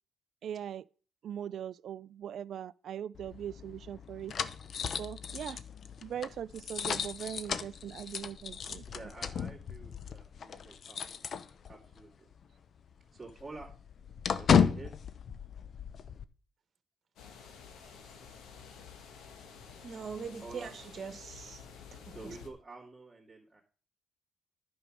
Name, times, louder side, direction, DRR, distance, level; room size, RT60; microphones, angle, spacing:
voice 1, 0.4-0.8 1.2-4.3 5.0-5.6 6.0-9.1, right 9 dB, 65° right, 0.3 m, -40 dB
sound 1, 3.1-12.0 12.3-12.4 12.8-16.2, left 7 dB, 55° left, 0.6 m, -34 dB
voice 2, 8.9-11.0 11.7-12.3 13.1-13.7 14.3-14.9 20.4-20.7 22.1-23.6, right 3 dB, 15° right, 2.6 m, -48 dB
sound 2, 17.2-22.5, left 6 dB, 80° left, 1.5 m, -51 dB
voice 3, 19.8-21.6 21.9-22.4, right 6 dB, 50° right, 1.3 m, -42 dB
10.0 x 5.4 x 6.2 m
cardioid pair, 90°, 0 cm